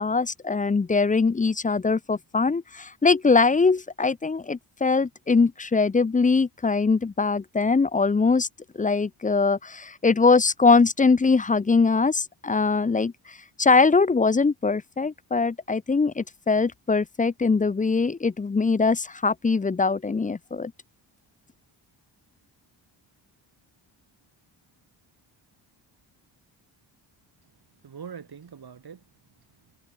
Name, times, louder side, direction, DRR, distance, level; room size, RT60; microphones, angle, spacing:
voice 1, 0.0-8.5 8.7-20.7, left 4 dB, 15° left, 0.5 m, -22 dB
voice 2, 27.4-29.8, right 7 dB, 50° right, 7.9 m, -45 dB
cardioid pair, 110°, 47 cm